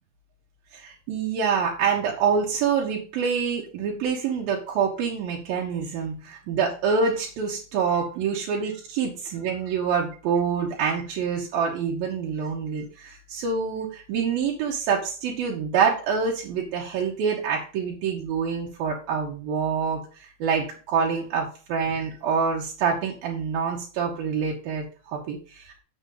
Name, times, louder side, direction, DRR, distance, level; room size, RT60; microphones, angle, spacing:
voice 1, 0.7-25.8, right 6 dB, 75° right, -2 dB, 3.0 m, -26 dB
7.2 x 6.9 x 3.8 m, 0.36 s
omnidirectional pair, 4.2 m